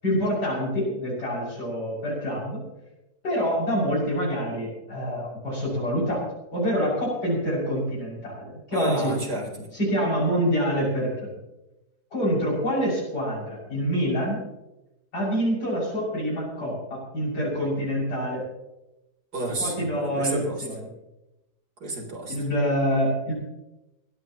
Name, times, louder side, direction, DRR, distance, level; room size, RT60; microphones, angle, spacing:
voice 1, 0.0-2.6 3.2-6.3 6.5-9.2 9.7-11.3 12.1-14.4 15.1-18.4 19.6-20.9 22.3-23.3, equal, 80° left, -5 dB, 7.3 m, -26 dB
voice 2, 8.7-9.7 19.3-20.6 21.8-22.4, right 2 dB, 75° right, 1 dB, 4.2 m, -31 dB
22.5 x 17.0 x 3.0 m, 0.94 s
omnidirectional pair, 1.7 m